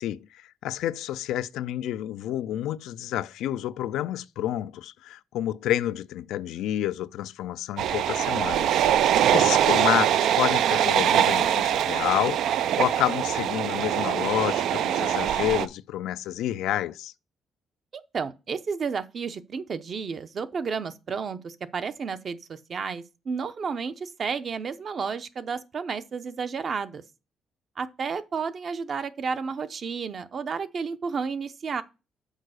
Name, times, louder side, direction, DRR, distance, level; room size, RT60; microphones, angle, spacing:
voice 1, 0.0-17.1, left 12 dB, 90° left, 0.3 m, -29 dB
sound 1, 7.8-15.7, right 10 dB, 80° right, 0.3 m, -23 dB
voice 2, 9.1-9.4 17.9-27.0 27.8-31.8, right 5 dB, 50° right, 0.7 m, -32 dB
6.5 x 4.7 x 6.4 m
cardioid pair, 90°, 0 cm